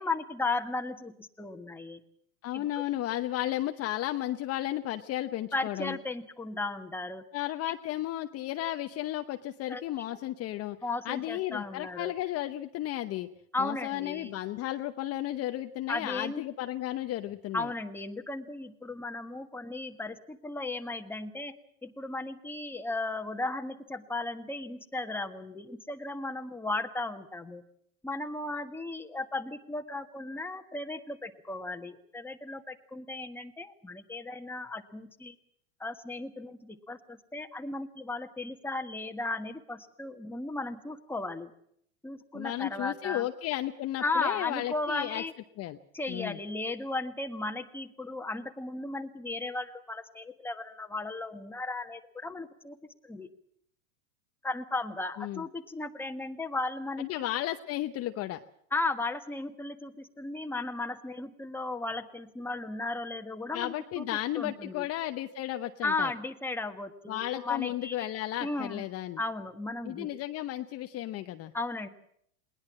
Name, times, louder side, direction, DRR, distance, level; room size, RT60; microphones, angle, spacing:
voice 1, 0.0-2.0 2.5-2.8 5.5-7.2 7.7-7.8 9.7-10.2 10.8-12.1 13.5-14.4 15.9-16.4 17.5-21.5 21.8-27.6 28.0-35.3 35.8-41.5 42.0-43.3 44.0-45.3 45.9-52.8 53.0-53.3 54.4-57.2 58.7-64.1 64.3-64.9 65.8-68.1 68.4-68.8 69.2-70.1 71.5-71.9, left 2 dB, 5° left, 5 dB, 1.6 m, -35 dB
voice 2, 2.4-6.0 7.3-10.8 11.1-13.3 13.6-17.7 42.3-45.2 45.6-45.8 46.1-46.4 55.2-55.4 57.0-58.4 63.5-66.1 67.1-69.2 69.8-71.5, left 14 dB, 35° left, 7 dB, 0.9 m, -34 dB
21.0 x 19.5 x 7.6 m, 0.69 s
hypercardioid pair, 110°, 41 cm